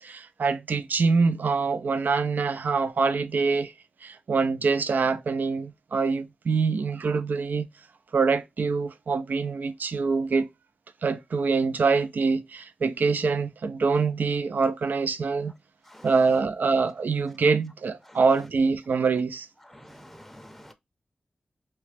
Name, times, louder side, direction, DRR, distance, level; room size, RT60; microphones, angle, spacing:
voice 1, 0.0-3.7 4.0-7.7 8.1-10.5 11.0-15.5 16.0-19.5, right 4 dB, 75° right, 0.3 m, -25 dB
voice 2, 19.7-20.7, equal, 5° left, 0.6 m, -48 dB
2.8 x 2.1 x 3.2 m
cardioid pair, 40°, 3 cm